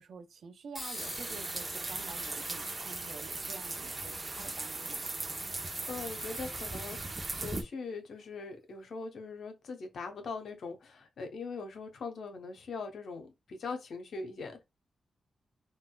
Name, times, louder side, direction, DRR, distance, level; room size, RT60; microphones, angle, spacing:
voice 1, 0.0-5.1, right 5 dB, 75° right, 0.5 m, -49 dB
sound 1, 0.7-5.7, left 1 dB, 10° left, 1.7 m, -48 dB
sound 2, 1.0-7.6, right 2 dB, 35° right, 0.7 m, -38 dB
voice 2, 5.5-14.6, left 4 dB, 75° left, 0.7 m, -41 dB
3.7 x 2.3 x 2.2 m
supercardioid pair, 50°, 0 cm